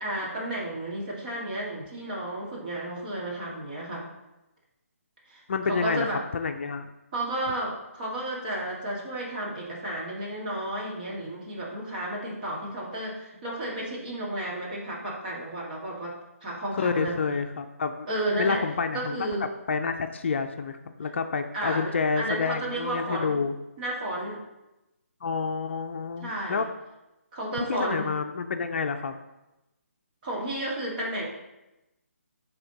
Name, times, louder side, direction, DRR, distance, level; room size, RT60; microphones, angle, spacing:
voice 1, 0.0-4.1 5.3-6.2 7.1-17.2 18.1-18.7 18.9-19.5 21.5-21.9 22.2-23.4 23.8-24.4 26.2-26.7 27.3-28.1 30.2-31.3, right 1 dB, 35° right, -4 dB, 2.1 m, -32 dB
voice 2, 5.5-6.9 16.7-18.1 18.4-19.2 19.7-23.5 25.2-26.7 27.7-29.2, left 5 dB, 50° left, 7 dB, 0.5 m, -29 dB
10.0 x 3.7 x 3.9 m, 0.98 s
figure-of-eight pair, 155°, 8 cm